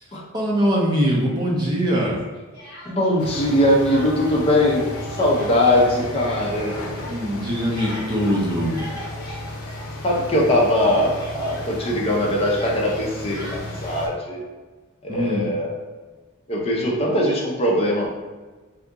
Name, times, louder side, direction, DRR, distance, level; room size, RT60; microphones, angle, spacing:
voice 1, 0.3-2.2 7.1-8.9 15.1-15.6, equal, 20° right, -3 dB, 0.5 m, -22 dB
Speech, 1.9-3.2 3.5-4.4 4.7-10.4 10.6-14.1, equal, 45° left, 1.1 m, -42 dB
voice 2, 2.8-6.8 10.0-14.4 15.0-15.7 16.5-18.1, left 1 dB, 25° left, -2 dB, 0.6 m, -21 dB
sound 1, 3.2-14.1, left 1 dB, 80° left, 0.6 m, -34 dB
2.7 x 2.5 x 3.5 m, 1.3 s
head